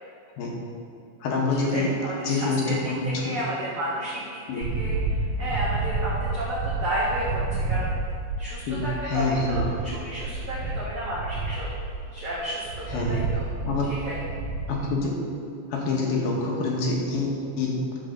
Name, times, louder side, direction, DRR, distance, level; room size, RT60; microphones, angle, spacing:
voice 1, 1.2-1.9 2.2-3.3 4.5-4.7 8.7-9.6 12.9-13.2 13.6-13.8 14.7-15.1 15.7-18.0, left 3 dB, 70° left, -2 dB, 2.4 m, -26 dB
voice 2, 1.7-7.9 8.4-11.7 12.1-13.4 14.0-14.2, right 1 dB, 60° right, -8 dB, 1.7 m, -32 dB
sound 1, 4.6-14.8, right 3 dB, 80° right, 3.2 m, -30 dB
10.5 x 4.9 x 6.6 m, 2.6 s
omnidirectional pair, 5.6 m